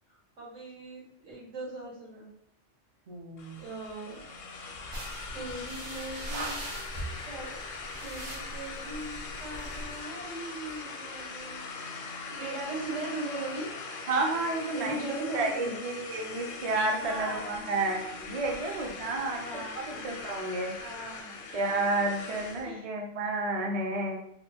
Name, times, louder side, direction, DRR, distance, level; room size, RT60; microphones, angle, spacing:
voice 1, 0.4-2.3 3.6-4.2 5.3-6.6 7.2-7.7 8.0-11.9 12.3-13.7 14.7-15.8 17.0-17.5 18.9-20.0 20.8-21.5 22.6-22.9, right 2 dB, 85° right, -5 dB, 1.5 m, -39 dB
voice 2, 3.1-3.6 14.1-15.0 15.3-19.4 19.8-20.7 21.5-24.2, right 2 dB, 50° right, 1 dB, 0.4 m, -31 dB
sound 1, 3.4-22.7, left 4 dB, 60° left, 0.6 m, -41 dB
sound 2, 4.9-10.0, right 1 dB, 70° right, 1.0 m, -41 dB
2.8 x 2.2 x 3.4 m, 0.69 s
omnidirectional pair, 1.3 m